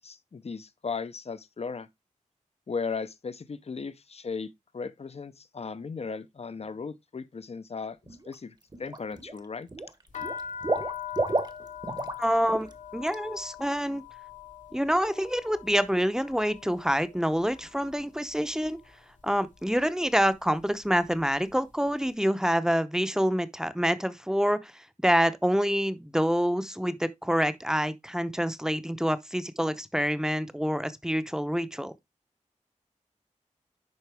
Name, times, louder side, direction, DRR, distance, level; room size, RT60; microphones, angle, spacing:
voice 1, 0.0-1.9 2.7-8.0 8.3-8.5 8.8-9.7, left 5 dB, 55° left, 0.7 m, -36 dB
Water / Liquid, 8.1-8.4 8.7-9.4 9.7-12.2 12.5-12.7 13.1-13.2, right 2 dB, 35° right, 1.1 m, -31 dB
sound 1, 10.1-18.0 18.3-18.9 19.6-19.9 20.1-21.6, left 8 dB, 80° left, 1.9 m, -42 dB
voice 2, 12.2-12.7 12.9-14.0 14.7-18.8 19.2-31.9, equal, 5° right, 0.8 m, -27 dB
10.5 x 4.0 x 3.4 m
wide cardioid pair, 75°, 13 cm